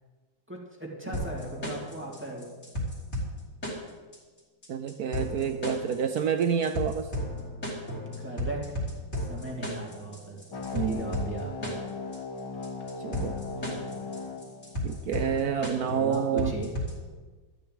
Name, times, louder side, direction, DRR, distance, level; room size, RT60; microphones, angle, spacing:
voice 1, 0.5-2.5 8.2-8.9 9.2-11.8 12.8-12.9 16.0-16.7, right 2 dB, 5° right, -2 dB, 2.4 m, -38 dB
sound 1, 1.1-17.1, left 1 dB, 30° left, 3.6 m, -35 dB
voice 2, 4.7-7.1 10.7-11.0 13.0-13.3 14.8-16.5, right 7 dB, 70° right, 8 dB, 0.8 m, -28 dB
sound 2, 10.5-15.5, left 4 dB, 55° left, 2.3 m, -38 dB
13.0 x 6.9 x 9.2 m, 1.4 s
omnidirectional pair, 2.4 m